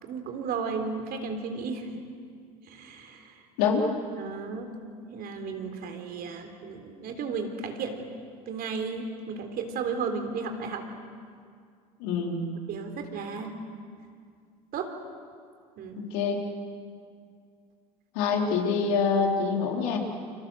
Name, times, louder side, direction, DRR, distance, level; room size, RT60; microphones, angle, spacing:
voice 1, 0.0-1.9 2.7-3.3 4.2-4.7 5.1-8.1 8.5-10.8 12.7-13.5 14.7-14.9 15.8-16.0, right 5 dB, 50° right, 5 dB, 3.7 m, -34 dB
voice 2, 3.6-3.9 12.0-12.5 16.0-16.5 18.1-20.0, left 5 dB, 65° left, 1 dB, 4.0 m, -25 dB
29.5 x 26.0 x 6.6 m, 2.1 s
hypercardioid pair, 70°, 20 cm